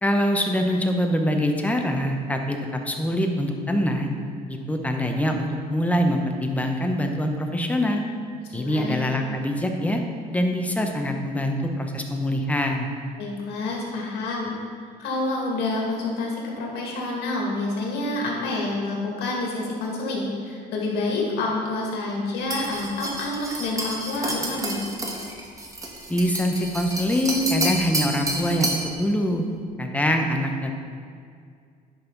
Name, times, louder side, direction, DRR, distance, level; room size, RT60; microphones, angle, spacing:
voice 1, 0.0-2.6 2.9-4.1 4.5-8.0 8.5-10.0 10.3-12.9 26.1-29.4 29.8-30.7, equal, 10° left, 3 dB, 0.9 m, -24 dB
voice 2, 8.6-9.0 13.2-14.5 15.0-24.8, left 2 dB, 80° left, -2 dB, 2.1 m, -28 dB
sound 1, 22.5-28.9, right 1 dB, 20° right, 1.2 m, -30 dB
10.5 x 5.5 x 4.0 m, 2.2 s
cardioid pair, 110°, 17 cm